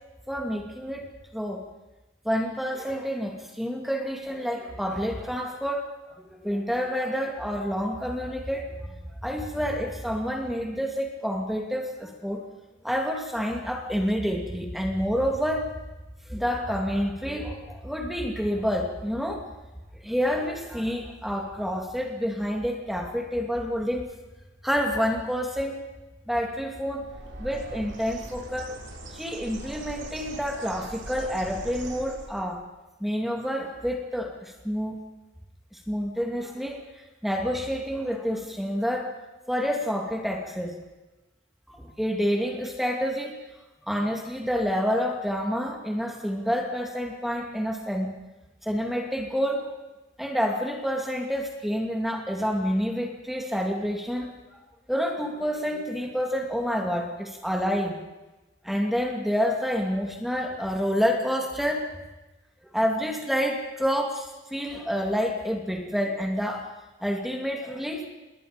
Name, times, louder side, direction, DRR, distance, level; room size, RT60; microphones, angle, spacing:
voice 1, 0.3-1.0 1.3-1.6 2.2-5.9 6.2-8.9 9.2-12.4 12.8-15.7 16.3-19.4 20.0-24.1 24.6-25.8 26.3-27.0 27.4-28.8 29.1-32.6 33.0-35.0 35.7-39.1 39.5-40.8 41.7-43.4 43.9-48.1 48.6-49.7 50.2-54.6 54.9-58.0 58.6-61.9 62.7-66.6 67.0-68.1, equal, ahead, 1 dB, 2.5 m, -28 dB
Bird, 27.0-32.5, right 2 dB, 75° right, 5.8 m, -41 dB
28.5 x 21.5 x 5.2 m, 1.1 s
head